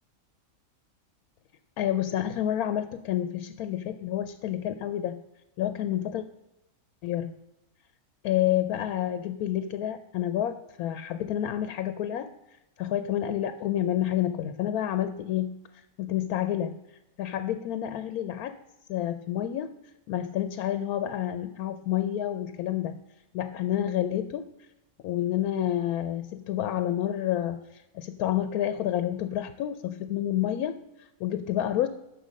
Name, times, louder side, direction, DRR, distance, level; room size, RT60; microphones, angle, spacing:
voice 1, 1.8-5.2 5.6-6.2 7.0-7.3 8.2-12.3 12.8-15.5 16.0-16.8 17.2-18.5 18.9-19.7 20.1-23.0 23.3-24.4 25.0-31.9, left 11 dB, 90° left, 11 dB, 1.1 m, -29 dB
10.0 x 6.5 x 6.3 m, 0.94 s
omnidirectional pair, 1.5 m